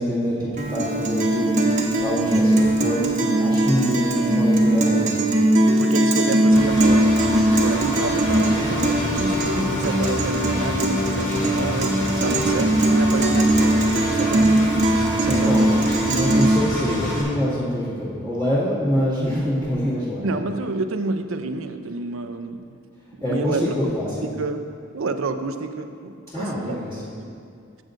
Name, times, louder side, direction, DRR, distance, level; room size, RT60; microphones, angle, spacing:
voice 1, 0.0-1.5 2.0-5.1 12.1-12.4 15.3-20.2 23.2-24.1 26.3-27.0, equal, 15° left, -14 dB, 2.1 m, -25 dB
Guitar, 0.6-16.6, right 1 dB, 35° right, 0.9 m, -20 dB
voice 2, 3.9-4.3 5.8-14.9 15.2-15.7 20.2-22.8 23.3-23.8 24.3-24.7 24.9-27.3, right 3 dB, 80° right, 8 dB, 0.5 m, -29 dB
Engine, 6.5-17.2, equal, 60° left, 2.3 m, -29 dB
15.0 x 7.7 x 2.6 m, 2.4 s
head